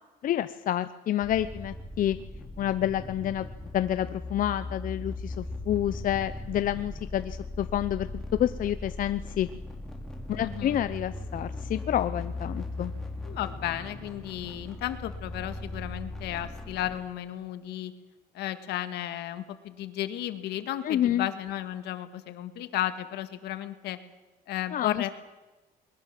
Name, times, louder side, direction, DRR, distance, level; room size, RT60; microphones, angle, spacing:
voice 1, 0.2-2.2 2.6-3.5 3.7-9.5 10.3-12.9 20.8-21.3 24.7-25.1, left 11 dB, 55° left, 12 dB, 0.7 m, -29 dB
sound 1, 1.2-17.0, left 2 dB, 5° left, 4.4 m, -38 dB
voice 2, 10.4-10.8 13.2-17.9 18.3-24.0 24.5-25.1, left 12 dB, 80° left, 10 dB, 1.9 m, -34 dB
21.5 x 21.0 x 7.6 m, 1.2 s
cardioid pair, 110°, 17 cm